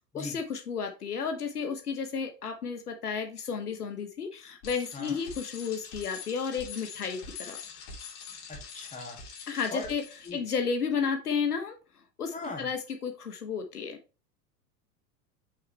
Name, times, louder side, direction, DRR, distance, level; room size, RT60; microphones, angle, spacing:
voice 1, 0.0-7.6 9.5-10.0 10.3-11.8 12.2-14.0, left 6 dB, 75° left, 6 dB, 1.1 m, -32 dB
Bicycle, 4.6-10.3, left 5 dB, 45° left, 2.6 m, -44 dB
voice 2, 8.5-9.2 9.7-9.9 10.2-10.4 12.3-12.7, left 2 dB, 15° left, 0 dB, 2.3 m, -39 dB
5.9 x 5.7 x 3.2 m, 0.33 s
figure-of-eight pair, 90°, 46 cm